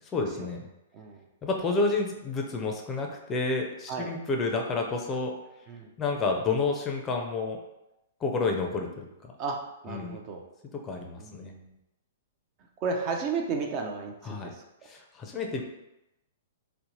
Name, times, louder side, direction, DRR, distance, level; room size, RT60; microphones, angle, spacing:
voice 1, 0.1-0.7 1.4-5.3 6.0-7.6 8.2-9.3 9.9-10.2 10.8-11.5 14.2-14.5 14.9-15.6, left 3 dB, 25° left, 2 dB, 0.4 m, -30 dB
voice 2, 9.8-10.4 11.2-11.7 12.8-14.6, right 4 dB, 40° right, 2 dB, 0.4 m, -33 dB
2.7 x 2.1 x 3.0 m, 0.91 s
hypercardioid pair, 120°, 0 cm